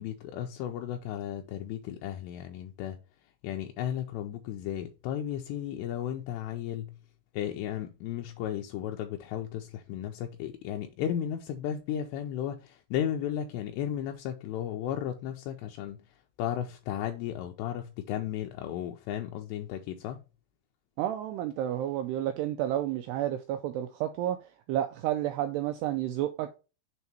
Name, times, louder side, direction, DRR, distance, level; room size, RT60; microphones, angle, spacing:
voice 1, 0.0-3.0 3.4-6.9 7.3-16.0 16.4-20.2, left 10 dB, 85° left, 2.6 m, -34 dB
voice 2, 21.0-26.6, right 12 dB, 85° right, 2.4 m, -31 dB
7.2 x 3.6 x 4.2 m
omnidirectional pair, 5.3 m